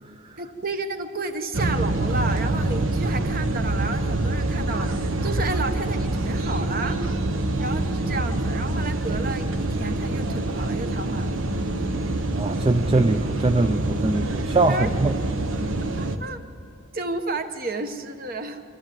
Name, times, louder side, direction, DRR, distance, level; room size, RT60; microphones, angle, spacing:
voice 1, 0.4-7.0 7.6-11.3 14.7-14.9 16.0-16.4 16.9-18.6, right 2 dB, 45° right, 7 dB, 1.1 m, -31 dB
sound 1, 1.5-16.2, right 2 dB, 70° right, 1.0 m, -26 dB
voice 2, 12.3-15.1, right 2 dB, 25° right, 7 dB, 0.4 m, -22 dB
24.5 x 14.5 x 7.6 m, 2.4 s
head